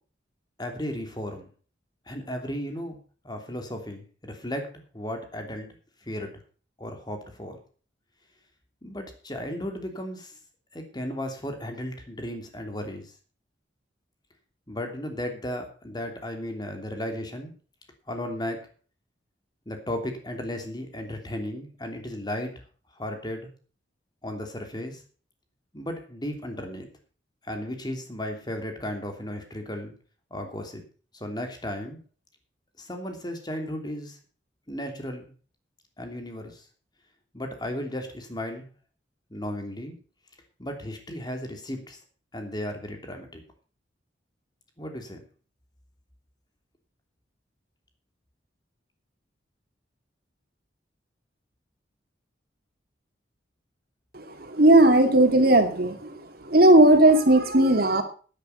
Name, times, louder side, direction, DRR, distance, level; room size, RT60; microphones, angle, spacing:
voice 1, 0.6-1.5 2.1-3.0 3.2-5.7 6.0-6.4 6.8-7.6 8.8-10.4 10.7-13.1 14.7-17.5 18.1-18.6 19.7-22.6 23.0-23.5 24.2-25.0 25.7-26.9 27.4-29.9 30.3-30.8 31.1-32.0 32.8-34.2 34.7-35.3 36.0-36.6 37.3-38.7 39.3-40.0 40.6-42.0 42.3-43.4 44.8-45.2, left 1 dB, 25° left, 4 dB, 3.0 m, -35 dB
voice 2, 54.4-56.1 56.5-58.0, right 1 dB, 55° right, 5 dB, 2.5 m, -17 dB
11.5 x 10.5 x 5.6 m, 0.39 s
head